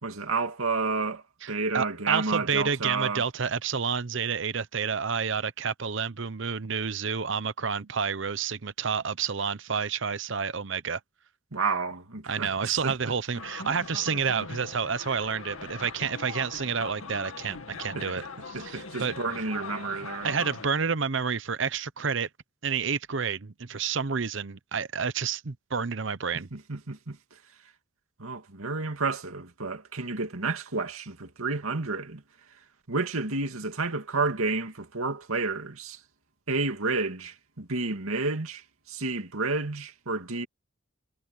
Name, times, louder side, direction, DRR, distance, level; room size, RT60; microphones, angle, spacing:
voice 1, 0.0-3.3 11.5-12.9 18.0-18.2 18.5-20.3 26.5-27.2 28.2-32.2 32.9-36.0 36.5-40.5, right 3 dB, 90° right, 2.4 m, -30 dB
voice 2, 1.4-11.0 12.3-19.1 20.2-22.3 22.6-26.5, right 6 dB, 60° right, 0.8 m, -29 dB
sound 1, 13.3-20.7, left 4 dB, 90° left, 2.3 m, -41 dB
head